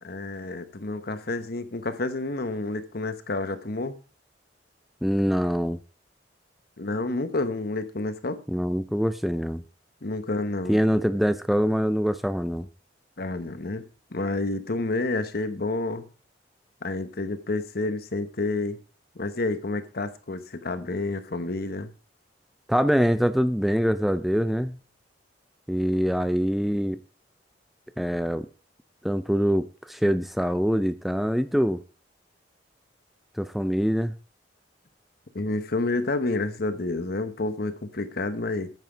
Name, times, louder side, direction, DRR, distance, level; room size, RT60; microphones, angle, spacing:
voice 1, 0.0-4.0 6.8-8.4 10.0-10.8 13.2-13.8 14.1-16.1 16.8-18.8 19.1-21.9 35.3-38.7, left 2 dB, 60° left, 1.1 m, -29 dB
voice 2, 5.0-5.8 8.5-9.6 10.7-12.7 22.7-24.8 25.7-27.0 28.0-28.5 29.0-31.8 33.4-34.1, equal, ahead, 0.4 m, -24 dB
9.3 x 8.2 x 5.0 m
head